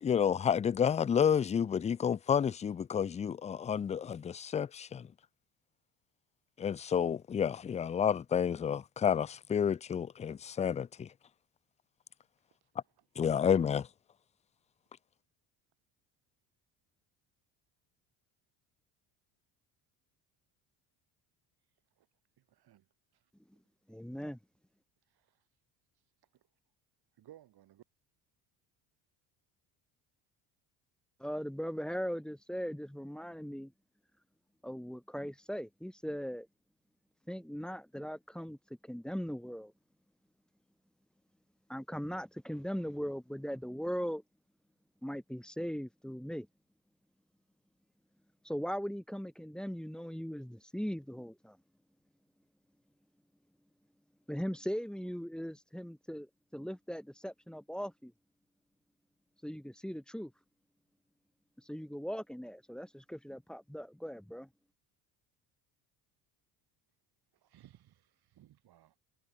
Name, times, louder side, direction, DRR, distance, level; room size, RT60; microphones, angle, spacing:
voice 1, 0.0-5.1 6.6-11.1 13.2-13.9, left 8 dB, 15° left, 0.3 m, -30 dB
voice 2, 23.9-24.4 31.2-33.7 34.6-36.5 37.3-38.6 38.8-39.7 41.7-44.2 45.0-46.5 48.4-51.6 54.3-58.1 59.4-60.3 61.6-64.5, equal, ahead, 2.0 m, -39 dB
voice 3, 27.2-27.8 67.5-68.0 68.3-68.9, right 13 dB, 55° right, 3.1 m, -58 dB
supercardioid pair, 85°, 44 cm